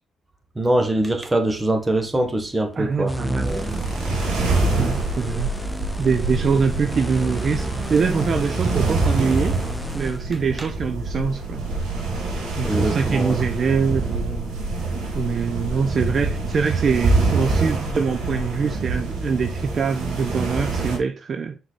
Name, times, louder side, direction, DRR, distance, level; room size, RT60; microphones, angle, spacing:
voice 1, 0.5-3.1 3.4-3.7 10.6-10.7 12.6-13.4, right 1 dB, 15° right, 1.6 m, -23 dB
voice 2, 2.8-3.5 4.2-4.4 4.7-5.5 6.0-9.6 9.9-11.7 12.6-21.6, right 5 dB, 50° right, 0.6 m, -24 dB
sound 1, 3.1-10.2, equal, 5° left, 0.6 m, -32 dB
sound 2, 3.4-21.0, right 3 dB, 90° right, 3.9 m, -25 dB
6.3 x 4.8 x 4.2 m
cardioid pair, 90°, 0 cm